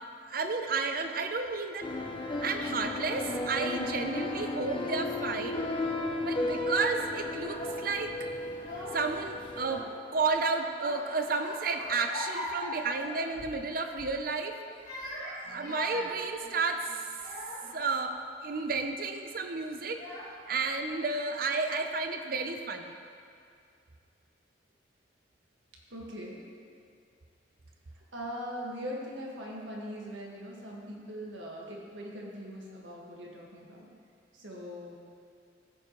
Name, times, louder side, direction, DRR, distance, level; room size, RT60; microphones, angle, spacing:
voice 1, 0.3-1.9 2.4-5.7 6.2-8.1 8.9-14.5 15.2-16.9 17.7-20.0 20.5-22.9, right 4 dB, 50° right, 6 dB, 0.6 m, -32 dB
sound 1, 1.8-9.8, left 2 dB, 25° left, 0.5 m, -34 dB
Child speech kid speaking / Crying sobbing, 7.3-7.8 8.5-9.1 9.5-10.3 10.7-13.6 13.9-14.2 14.7-17.8 18.4-18.8 19.6-19.7 19.9-20.6, left 1 dB, 45° left, 2.4 m, -41 dB
voice 2, 25.9-26.4 28.1-33.9 34.3-34.9, equal, 90° right, -3 dB, 1.7 m, -41 dB
14.5 x 6.9 x 3.1 m, 2.4 s
head